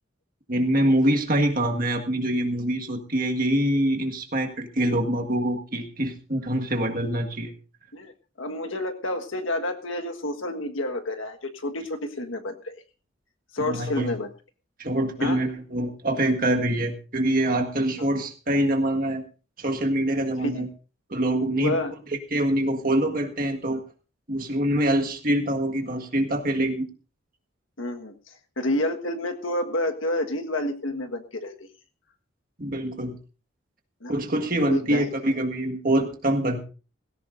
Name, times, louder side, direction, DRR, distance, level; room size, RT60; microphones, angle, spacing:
voice 1, 0.5-7.5 13.6-14.1 14.8-19.2 19.6-20.7 21.1-21.8 22.3-23.8 24.3-26.9 32.6-33.2 34.1-36.6, right 1 dB, 45° right, 3 dB, 1.7 m, -25 dB
voice 2, 8.4-12.8 13.5-14.3 15.2-15.4 20.4-20.7 21.5-21.9 27.8-31.7 34.0-34.2 34.7-35.1, left 1 dB, 75° left, 5 dB, 1.6 m, -29 dB
18.0 x 16.5 x 2.6 m, 0.34 s
head